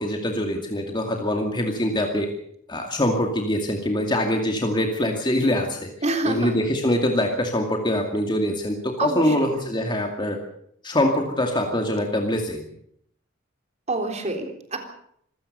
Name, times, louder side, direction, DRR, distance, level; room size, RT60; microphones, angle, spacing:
voice 1, 0.0-2.3 2.7-5.9 6.3-10.4 10.8-12.7, left 1 dB, 20° left, 2 dB, 2.4 m, -24 dB
voice 2, 6.0-6.5 9.0-9.5 13.9-14.8, right 2 dB, 35° right, 4 dB, 3.7 m, -27 dB
25.5 x 16.5 x 6.8 m, 0.70 s
head